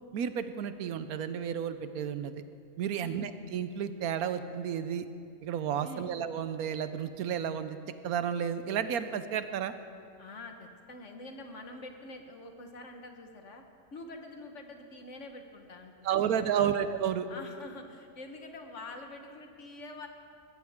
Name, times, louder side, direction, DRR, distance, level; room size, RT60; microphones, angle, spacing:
voice 1, 0.1-2.4 2.8-5.1 5.4-7.8 8.0-9.7 16.0-17.3, right 8 dB, 85° right, 11 dB, 1.2 m, -32 dB
voice 2, 3.0-3.3 5.8-6.1 10.2-13.6 13.9-16.8 17.3-20.1, left 2 dB, 55° left, 4 dB, 1.5 m, -46 dB
21.0 x 15.5 x 3.6 m, 2.5 s
omnidirectional pair, 1.5 m